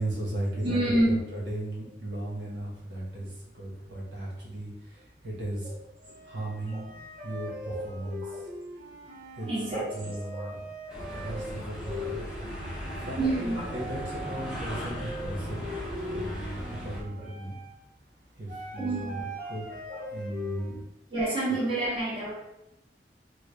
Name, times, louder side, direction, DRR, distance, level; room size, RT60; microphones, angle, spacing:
voice 1, 0.0-5.7 6.2-8.5 9.3-9.5 9.9-10.6 11.1-15.7 16.0-17.6 18.4-19.2 19.5-19.7 20.1-20.8, right 1 dB, 90° right, -5 dB, 1.2 m, -36 dB
voice 2, 0.6-1.2 7.6-7.8 8.2-8.5 9.4-10.5 12.1-12.3 13.2-13.8 18.8-19.2 19.9-20.0 21.1-22.3, right 1 dB, 30° right, -7 dB, 1.0 m, -29 dB
sound 1, 2.3-3.6 3.8-4.6 4.9-20.8, left 1 dB, 50° right, 0.5 m, -42 dB
sound 2, 10.9-17.0, equal, 5° right, 0.8 m, -37 dB
3.3 x 2.3 x 3.3 m, 0.87 s
head